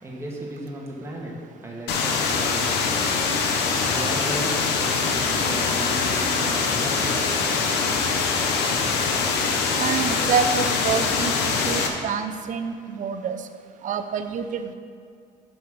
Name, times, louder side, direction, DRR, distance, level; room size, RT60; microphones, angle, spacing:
voice 1, 0.0-1.3 1.6-2.7 3.8-7.1, right 1 dB, 15° right, -3 dB, 1.7 m, -35 dB
sound 1, 1.9-11.9, left 5 dB, 85° left, 0.9 m, -23 dB
voice 2, 9.8-13.4 13.8-14.7, right 6 dB, 50° right, 9 dB, 0.6 m, -27 dB
5.7 x 5.6 x 6.1 m, 2.3 s
cardioid pair, 110°, 17 cm